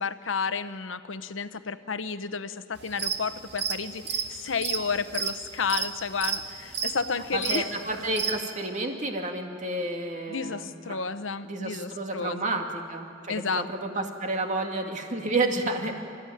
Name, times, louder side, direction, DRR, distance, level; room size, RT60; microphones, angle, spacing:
voice 1, 0.0-7.7 10.3-12.6 13.3-13.7 13.9-14.1, left 5 dB, 90° left, 12 dB, 0.9 m, -31 dB
sound 1, 2.8-3.2 3.5-8.4, right 7 dB, 60° right, 1.8 m, -30 dB
voice 2, 7.3-10.7 11.4-15.9, right 2 dB, 40° right, 3 dB, 2.3 m, -30 dB
28.0 x 14.5 x 9.2 m, 2.5 s
head